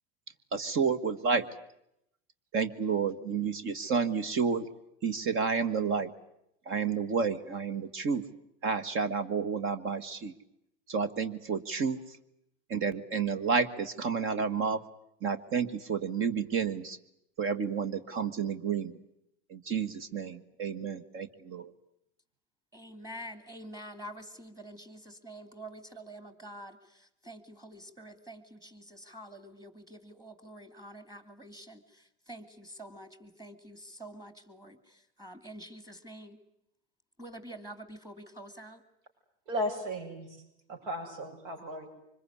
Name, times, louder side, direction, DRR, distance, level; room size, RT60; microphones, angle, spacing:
voice 1, 0.5-1.5 2.5-4.7 5.0-6.1 6.6-8.2 8.6-10.3 10.9-12.2 12.7-14.8 15.2-17.0 17.4-19.0 19.5-21.7, right 5 dB, 40° right, 13 dB, 1.6 m, -30 dB
voice 2, 22.7-36.4 37.2-38.8, right 1 dB, 10° right, 11 dB, 2.5 m, -47 dB
voice 3, 39.5-40.4 40.7-41.9, equal, 65° right, 4 dB, 7.5 m, -35 dB
25.5 x 21.5 x 9.7 m, 0.79 s
supercardioid pair, 125°, 33 cm